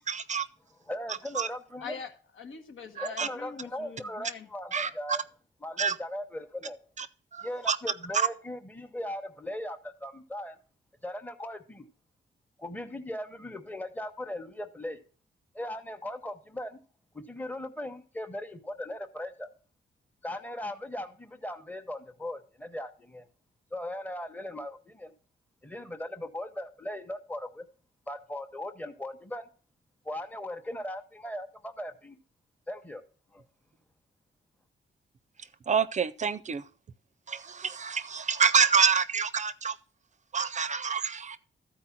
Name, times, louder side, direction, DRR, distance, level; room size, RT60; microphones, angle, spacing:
voice 1, 0.1-0.5 1.3-1.5 3.0-3.3 4.7-5.2 5.8-6.0 7.0-7.1 7.3-7.8 8.1-8.3 35.4-36.7 37.3-39.8 40.3-41.4, right 6 dB, 40° right, 0.4 m, -27 dB
voice 2, 0.9-2.0 3.0-5.2 5.6-6.8 7.4-10.6 11.0-11.8 12.6-15.0 15.5-16.8 17.1-19.5 20.2-23.2 23.7-25.1 25.6-27.7 28.1-29.5 30.0-32.2 32.7-33.0 33.3-33.4, left 1 dB, 10° left, 0.9 m, -38 dB
voice 3, 1.8-4.5, left 6 dB, 85° left, 1.3 m, -43 dB
13.5 x 4.5 x 5.8 m
wide cardioid pair, 145°, 20 cm